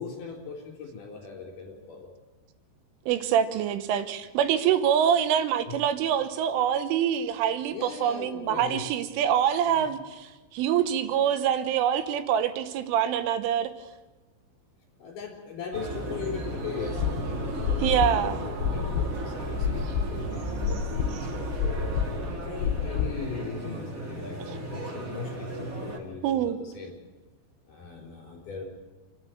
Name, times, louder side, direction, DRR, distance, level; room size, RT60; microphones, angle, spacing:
voice 1, 0.0-2.1 5.7-5.8 7.7-8.9 9.7-9.9 15.0-22.0 22.3-26.9 27.7-28.6, left 5 dB, 45° left, 0 dB, 5.2 m, -39 dB
voice 2, 3.1-13.7 17.8-18.4 24.5-24.6 26.2-26.6, right 9 dB, 85° right, 10 dB, 3.6 m, -25 dB
sound 1, 15.7-26.0, right 1 dB, 25° right, 2.0 m, -36 dB
sound 2, 15.7-22.4, right 6 dB, 70° right, 2.7 m, -39 dB
sound 3, 17.0-23.3, left 8 dB, 75° left, 2.8 m, -29 dB
27.5 x 11.5 x 9.2 m, 1.2 s
omnidirectional pair, 5.5 m